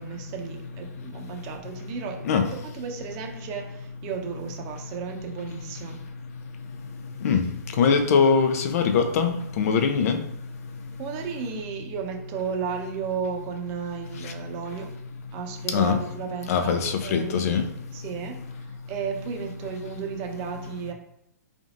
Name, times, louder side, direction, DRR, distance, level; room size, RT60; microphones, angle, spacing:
voice 1, 0.0-6.0 11.0-14.9 15.3-17.5 17.9-20.9, right 6 dB, 35° right, 3 dB, 0.8 m, -34 dB
voice 2, 7.8-10.2 15.7-16.0 16.5-17.7, left 6 dB, 55° left, 6 dB, 0.6 m, -22 dB
3.8 x 3.5 x 2.5 m, 0.77 s
hypercardioid pair, 125°, 10 cm